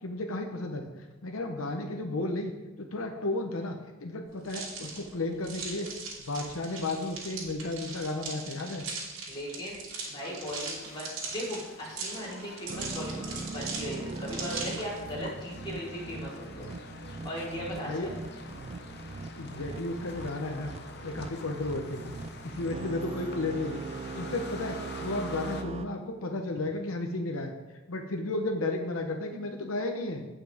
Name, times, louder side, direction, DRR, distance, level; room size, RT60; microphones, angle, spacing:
voice 1, 0.0-2.5 2.8-5.9 6.3-8.8 17.9-18.1 19.4-20.7 21.0-22.1 22.4-23.8 24.1-27.5 27.9-30.3, left 2 dB, 85° left, 3 dB, 0.9 m, -33 dB
sound 1, 4.4-15.0, right 4 dB, 70° right, 2.8 m, -40 dB
voice 2, 9.3-9.8 10.1-16.7 17.2-18.1, equal, 25° left, -7 dB, 3.8 m, -38 dB
sound 2, 10.1-25.6, left 4 dB, 55° left, 0.8 m, -47 dB
sound 3, 12.7-25.9, right 4 dB, 30° right, 0.3 m, -40 dB
16.5 x 5.8 x 3.5 m, 1.1 s
head